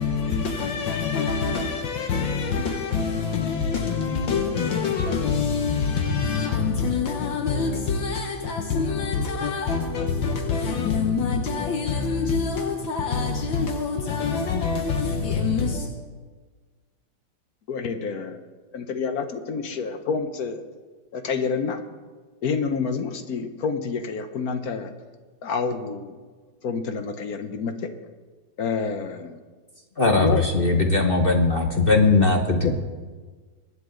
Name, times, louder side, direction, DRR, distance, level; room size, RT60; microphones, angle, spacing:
voice 1, 0.0-15.9, left 5 dB, 80° left, 1.7 m, -25 dB
voice 2, 17.7-18.4 18.7-20.6 21.1-21.8 22.4-24.9 25.4-26.2 26.6-27.9 28.6-29.4 30.2-30.4 32.6-32.7, left 5 dB, 55° left, 1.2 m, -28 dB
voice 3, 30.0-32.7, left 3 dB, 40° left, 0.8 m, -19 dB
23.0 x 9.5 x 3.8 m
omnidirectional pair, 2.1 m